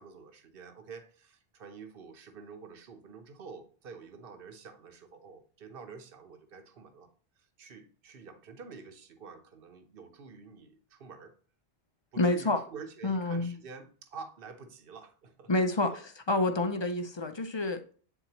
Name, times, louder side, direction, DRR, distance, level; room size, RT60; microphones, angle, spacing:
voice 1, 0.0-7.1 7.4-11.3 12.1-15.5 15.9-16.0, right 5 dB, 55° right, 1.1 m, -48 dB
voice 2, 12.2-12.6 13.0-13.5 15.5-16.0 16.3-17.9, left 2 dB, 35° left, 0.5 m, -28 dB
9.0 x 4.2 x 2.8 m
omnidirectional pair, 1.1 m